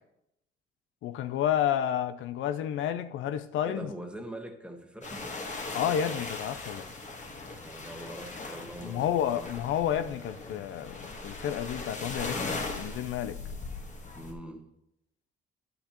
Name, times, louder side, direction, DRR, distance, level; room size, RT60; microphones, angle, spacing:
voice 1, 1.0-3.9 5.7-6.9 8.8-13.4, left 10 dB, 80° left, 0.5 m, -30 dB
voice 2, 3.6-5.2 7.6-9.5 14.2-14.7, right 1 dB, 5° right, 1.2 m, -42 dB
sound 1, 5.0-14.3, left 3 dB, 40° left, 1.4 m, -39 dB
10.0 x 8.3 x 3.0 m
cardioid pair, 90°, 20 cm